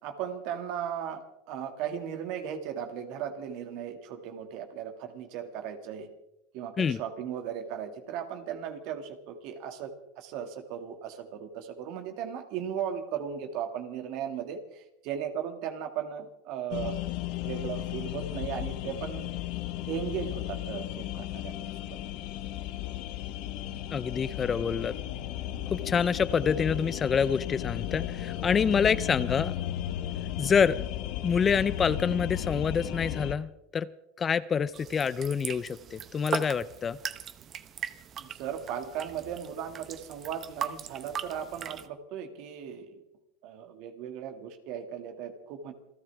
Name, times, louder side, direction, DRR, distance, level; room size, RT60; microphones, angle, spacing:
voice 1, 0.0-1.2 1.5-6.1 6.5-17.0 17.4-19.3 19.9-22.0 38.2-42.9 43.4-45.7, right 8 dB, 60° right, 6 dB, 2.2 m, -37 dB
sound 1, 16.7-33.3, left 13 dB, 60° left, 1.2 m, -35 dB
voice 2, 23.9-24.9 25.7-29.6 30.4-30.9 31.2-33.9 34.2-37.0, left 6 dB, 25° left, 16 dB, 0.6 m, -27 dB
sound 2, 34.7-41.9, right 8 dB, 35° right, 0.9 m, -39 dB
28.0 x 13.0 x 3.6 m, 0.87 s
supercardioid pair, 105°, 0 cm